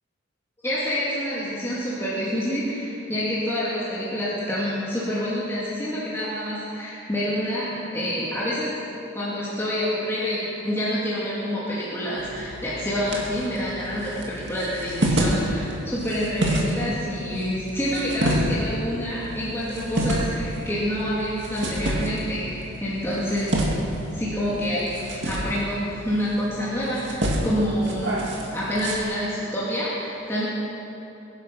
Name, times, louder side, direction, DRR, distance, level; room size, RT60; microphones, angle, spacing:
voice 1, 0.6-8.8 9.1-23.8 24.1-28.2 28.5-30.5, equal, 10° left, -9 dB, 2.6 m, -27 dB
sound 1, 12.2-29.0, right 1 dB, 55° right, 2.4 m, -29 dB
22.0 x 10.5 x 5.9 m, 2.9 s
head